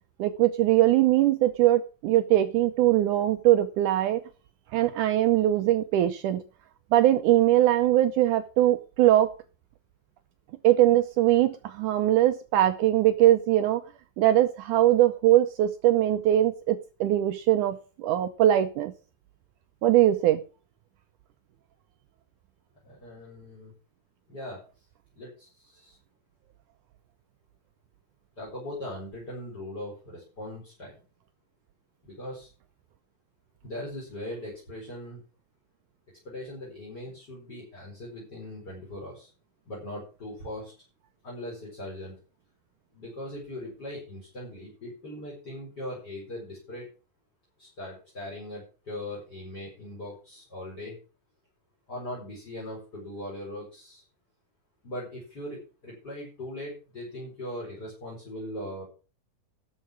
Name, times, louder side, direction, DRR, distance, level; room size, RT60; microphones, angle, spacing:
voice 1, 0.2-4.2 4.7-6.4 6.9-9.3 10.6-13.8 14.2-18.9 19.8-20.4, right 13 dB, 80° right, 10 dB, 1.8 m, -21 dB
voice 2, 22.8-23.7 24.3-24.6 25.1-26.0 28.4-30.9 32.0-32.5 33.6-35.2 36.2-39.3 39.6-40.7 41.2-42.1 42.9-46.9 47.6-51.0 51.9-54.0 54.8-58.9, left 1 dB, 25° left, -2 dB, 4.8 m, -40 dB
12.5 x 6.6 x 6.0 m, 0.35 s
omnidirectional pair, 4.3 m